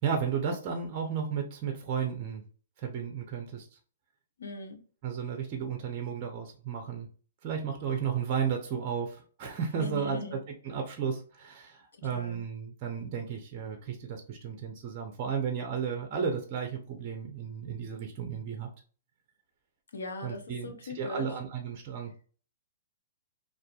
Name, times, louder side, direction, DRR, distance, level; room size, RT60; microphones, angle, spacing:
voice 1, 0.0-2.4 2.8-3.7 5.0-7.1 7.4-10.4 10.6-18.7 20.2-22.1, right 7 dB, 40° right, 4 dB, 0.6 m, -33 dB
voice 2, 4.4-4.8 9.8-10.4 12.0-12.4 19.9-21.4, left 2 dB, 85° left, 5 dB, 0.7 m, -40 dB
2.5 x 2.4 x 2.2 m, 0.40 s
hypercardioid pair, 135°, 0 cm